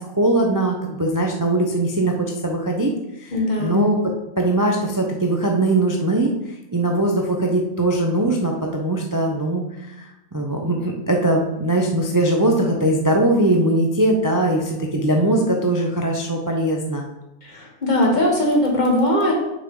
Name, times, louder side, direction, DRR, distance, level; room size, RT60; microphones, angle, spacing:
voice 1, 0.0-2.9 3.2-4.0 4.4-6.3 6.7-10.1 10.3-17.0, right 1 dB, 30° right, 1 dB, 0.3 m, -21 dB
voice 2, 3.3-3.9 17.4-19.3, left 1 dB, 30° left, -2 dB, 1.6 m, -20 dB
6.6 x 5.6 x 3.8 m, 0.93 s
omnidirectional pair, 1.6 m